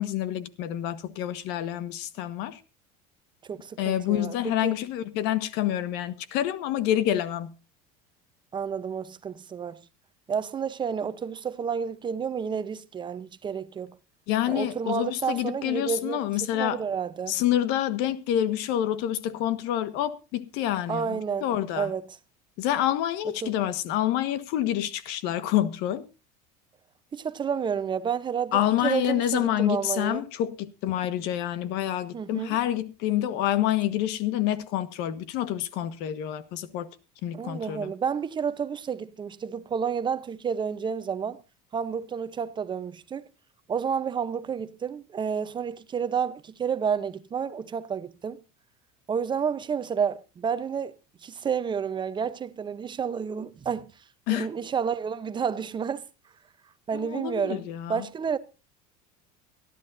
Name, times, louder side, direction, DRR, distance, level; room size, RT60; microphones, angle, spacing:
voice 1, 0.0-2.6 3.8-7.5 14.3-16.8 17.3-21.9 22.6-26.0 28.5-36.9 37.2-37.9 54.3-54.5 56.9-58.0, left 12 dB, 65° left, 1.5 m, -27 dB
voice 2, 3.5-4.8 8.5-9.8 10.3-14.0 14.5-17.3 20.9-21.5 21.8-22.0 23.4-23.5 27.1-30.2 32.1-32.6 37.3-41.4 41.7-43.3 43.7-48.4 49.1-50.9 51.2-53.9 54.3-56.0 56.9-58.4, right 7 dB, 25° right, 0.8 m, -30 dB
24.0 x 12.0 x 2.7 m
supercardioid pair, 125°, 18 cm